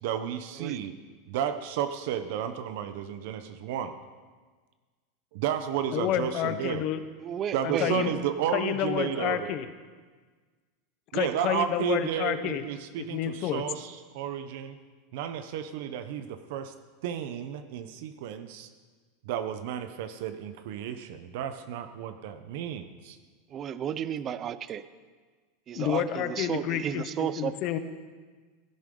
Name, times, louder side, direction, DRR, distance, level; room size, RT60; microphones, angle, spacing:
voice 1, 0.0-0.9 1.3-3.9 5.3-6.8 7.5-9.5 11.1-14.8 15.1-16.7 17.0-18.7 19.2-23.2, right 9 dB, 60° right, 9 dB, 0.8 m, -32 dB
voice 2, 5.9-7.0 7.6-8.1 8.5-9.7 11.1-12.6 13.0-13.6 25.7-27.8, left 11 dB, 40° left, 10 dB, 0.8 m, -29 dB
voice 3, 7.2-8.3 23.5-24.8 25.7-27.5, right 9 dB, 25° right, 15 dB, 0.4 m, -33 dB
15.5 x 13.0 x 3.8 m, 1.5 s
supercardioid pair, 160°, 0 cm